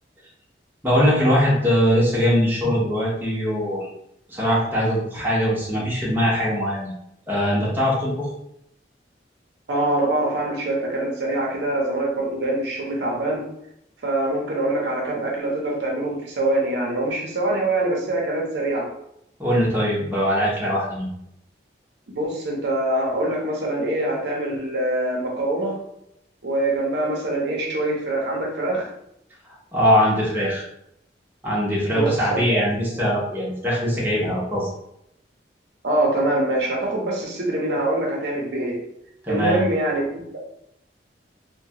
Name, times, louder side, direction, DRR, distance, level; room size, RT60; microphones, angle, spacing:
voice 1, 0.8-3.9 4.3-6.9 7.3-8.3 19.4-21.1 29.7-30.7 31.4-34.7 39.2-39.6, equal, 10° right, -6 dB, 0.7 m, -21 dB
voice 2, 9.7-13.5 14.0-18.9 22.1-25.8 26.4-28.9 31.9-32.4 35.8-38.8 39.3-40.4, right 1 dB, 65° right, -2 dB, 0.7 m, -24 dB
2.8 x 2.2 x 2.8 m, 0.77 s
head